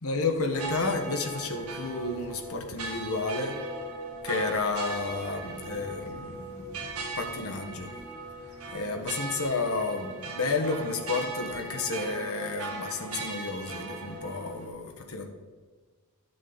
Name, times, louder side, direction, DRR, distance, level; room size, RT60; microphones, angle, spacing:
voice 1, 0.0-3.6 4.2-6.8 7.2-7.9 8.7-15.3, left 3 dB, 70° left, 4 dB, 1.4 m, -31 dB
sound 1, 0.5-14.7, right 3 dB, 70° right, 1.7 m, -38 dB
12.5 x 7.5 x 4.0 m, 1.5 s
head